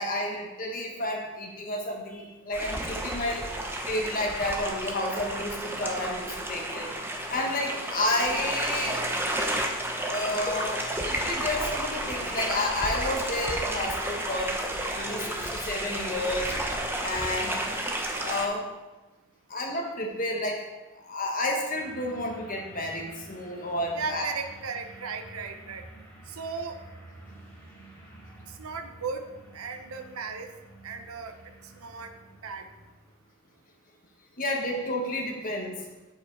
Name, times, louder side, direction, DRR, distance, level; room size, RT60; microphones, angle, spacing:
voice 1, 0.0-3.4 3.8-6.9 7.3-9.0 10.1-14.5 14.9-16.5 17.0-17.6 18.2-18.7 19.5-20.7 21.1-24.3 34.4-35.8, left 1 dB, 40° left, 1 dB, 1.3 m, -31 dB
sound 1, 2.5-18.5, right 1 dB, 10° right, 0.9 m, -32 dB
sound 2, 21.8-33.2, right 1 dB, 10° left, 2.3 m, -50 dB
voice 2, 23.9-25.8 26.3-26.8 28.5-29.2 29.5-30.5 30.8-31.4 31.7-32.1 32.4-32.7, right 5 dB, 85° right, 6 dB, 0.8 m, -36 dB
8.3 x 8.0 x 4.7 m, 1.1 s
head